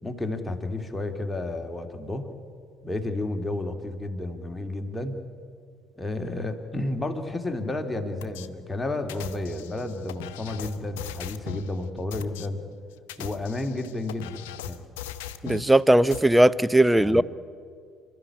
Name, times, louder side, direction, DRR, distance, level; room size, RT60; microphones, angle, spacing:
voice 1, 0.0-2.3 2.8-5.2 6.0-12.6 13.2-14.8 17.0-17.2, left 2 dB, 15° left, 4 dB, 2.5 m, -31 dB
sound 1, 8.2-8.5 9.1-11.7 12.1-12.5 13.0-15.7 16.1-16.2, left 12 dB, 70° left, 0.8 m, -39 dB
voice 2, 15.4-17.2, right 1 dB, 10° right, 18 dB, 0.7 m, -18 dB
28.5 x 13.0 x 9.8 m, 2.2 s
figure-of-eight pair, 55°, 0 cm